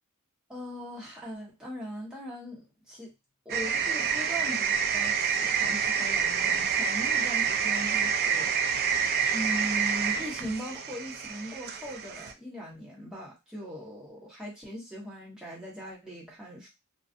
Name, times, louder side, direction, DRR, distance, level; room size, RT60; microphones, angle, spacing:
voice 1, 0.5-3.1 3.4-9.0 9.3-16.7, equal, 5° right, -6 dB, 1.1 m, -39 dB
sound 1, 3.5-12.3, right 7 dB, 45° right, 0.3 m, -28 dB
2.4 x 2.4 x 2.5 m, 0.23 s
head